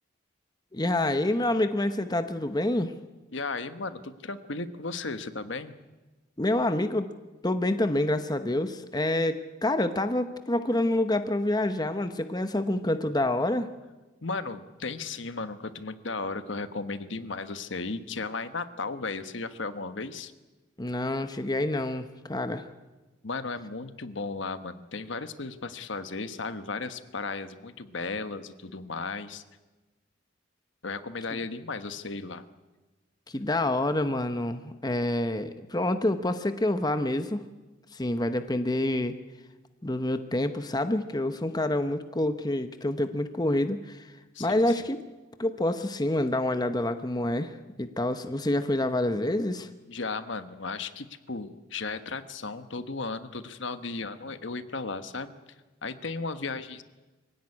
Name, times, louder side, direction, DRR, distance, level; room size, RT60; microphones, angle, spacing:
voice 1, 0.7-2.9 6.4-7.1 7.4-13.7 20.8-22.7 33.3-37.4 37.9-39.1 39.8-44.1 44.4-45.0 45.4-49.7, left 1 dB, 20° left, 9 dB, 0.9 m, -27 dB
voice 2, 3.3-5.8 14.2-20.3 23.2-29.4 30.8-32.4 44.3-44.7 49.9-55.3 55.8-56.8, left 3 dB, 60° left, 11 dB, 1.2 m, -35 dB
24.0 x 16.5 x 9.8 m, 1.2 s
head